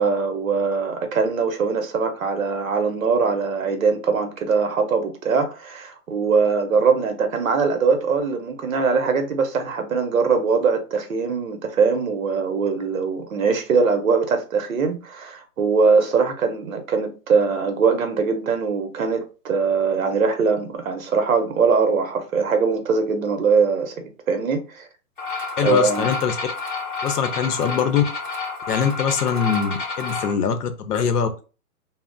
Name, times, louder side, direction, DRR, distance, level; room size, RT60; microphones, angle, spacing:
voice 1, 0.0-24.9 25.6-26.1, right 5 dB, 60° right, 0.7 m, -21 dB
sound 1, 25.2-30.3, left 4 dB, 35° left, 0.7 m, -29 dB
voice 2, 25.6-26.4 27.0-28.0 28.7-31.4, left 7 dB, 80° left, 0.7 m, -22 dB
2.2 x 2.0 x 3.6 m
hypercardioid pair, 180°, 46 cm